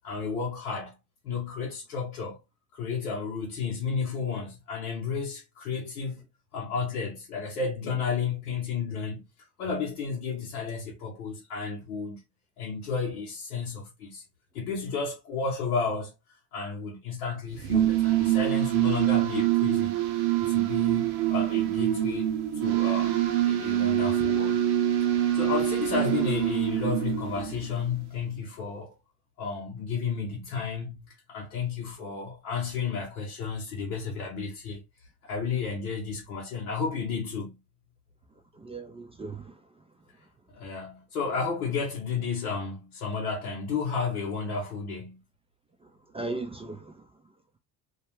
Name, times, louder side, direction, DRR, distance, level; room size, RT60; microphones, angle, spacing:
voice 1, 0.0-0.9 1.2-2.4 2.7-6.2 6.5-9.2 9.6-12.2 12.6-14.2 14.5-16.1 16.5-20.0 20.4-23.2 23.4-24.6 25.3-29.0 29.4-34.8 35.2-37.6 40.5-45.2, left 5 dB, 85° left, 0.8 m, -32 dB
sound 1, 17.5-27.9, right 13 dB, 75° right, 0.7 m, -25 dB
voice 2, 38.6-39.5 46.1-46.9, right 3 dB, 15° right, 0.3 m, -36 dB
2.3 x 2.2 x 3.0 m
hypercardioid pair, 55°, 44 cm